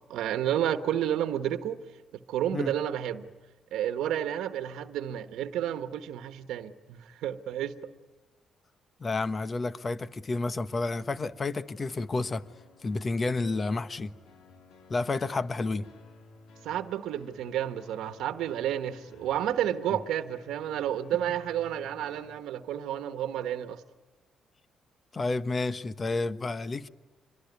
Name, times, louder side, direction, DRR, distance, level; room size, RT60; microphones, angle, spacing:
voice 1, 0.0-1.8 2.3-3.3 3.7-7.9 16.6-23.8, right 10 dB, 85° right, 1.2 m, -31 dB
voice 2, 9.0-12.4 12.8-14.1 14.9-15.9 25.1-26.9, left 3 dB, 35° left, 1.1 m, -30 dB
sound 1, 10.9-22.4, left 3 dB, 80° left, 3.3 m, -55 dB
26.5 x 22.5 x 9.5 m
cardioid pair, 90°, 0 cm